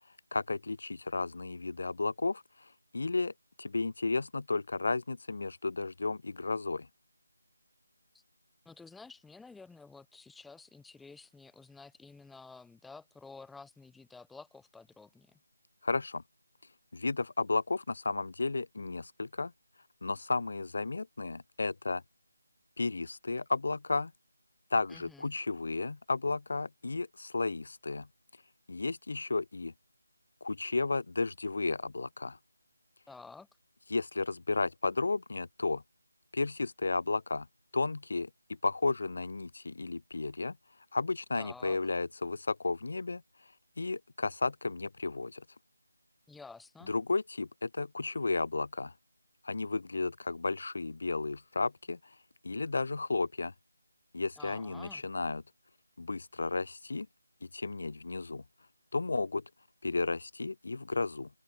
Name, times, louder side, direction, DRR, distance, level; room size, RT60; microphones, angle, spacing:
voice 1, 0.3-2.4 2.9-3.3 3.6-6.9 15.8-16.2 16.9-19.5 20.0-22.0 22.8-24.1 24.7-28.1 28.7-29.7 30.4-32.4 33.9-35.8 36.3-37.5 37.7-38.3 38.6-40.6 40.9-43.2 43.8-45.4 46.9-48.9 49.4-52.0 52.4-53.5 54.1-55.4 56.0-57.1 57.5-58.4 58.9-59.4 59.8-61.3, left 3 dB, 60° left, 0.4 m, -33 dB
voice 2, 8.6-15.4 24.9-25.3 33.1-33.5 41.4-41.8 46.3-46.9 54.4-55.0, left 4 dB, 5° left, 0.7 m, -51 dB
open air
figure-of-eight pair, 165°, 0 cm